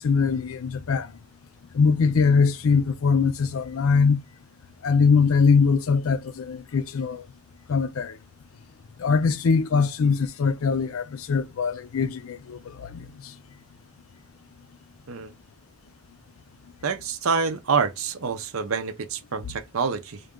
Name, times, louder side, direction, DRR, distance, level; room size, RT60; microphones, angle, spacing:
voice 1, 0.0-1.1 1.7-4.2 4.8-7.2 7.7-8.2 9.0-13.1, left 5 dB, 80° left, 0.4 m, -22 dB
voice 2, 16.8-20.2, right 5 dB, 80° right, 0.7 m, -27 dB
3.7 x 2.7 x 3.5 m
head